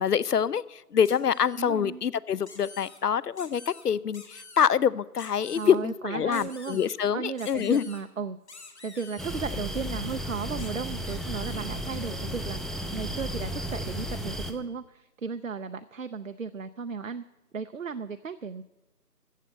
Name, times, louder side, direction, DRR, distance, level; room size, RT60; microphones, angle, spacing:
voice 1, 0.0-7.8, left 8 dB, 75° left, 21 dB, 0.6 m, -26 dB
sound 1, 1.0-1.7 2.4-3.0 3.4-3.9 4.1-4.7 5.2-5.7 6.3-6.9 7.4-8.0 8.5-9.4 10.6-10.7 11.0-11.8, left 3 dB, 45° left, 1.7 m, -48 dB
voice 2, 1.5-2.0 5.5-6.8 7.1-8.4 8.8-12.6 12.9-17.2 17.5-18.6, right 5 dB, 55° right, 10 dB, 0.5 m, -35 dB
sound 2, 9.2-14.5, equal, ahead, 0.5 m, -34 dB
15.0 x 6.4 x 8.1 m, 0.99 s
figure-of-eight pair, 170°, 48 cm